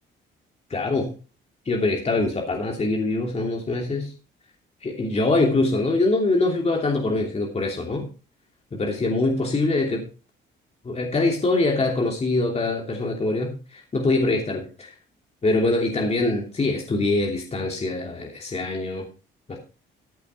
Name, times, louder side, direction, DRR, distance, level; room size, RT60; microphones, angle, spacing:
voice 1, 0.7-1.1 1.7-4.1 4.8-8.1 8.7-10.1 10.8-14.9 15.4-19.1 19.5-19.6, left 2 dB, 30° left, 1 dB, 3.0 m, -24 dB
14.5 x 8.4 x 4.5 m, 0.34 s
cardioid pair, 90°, 20 cm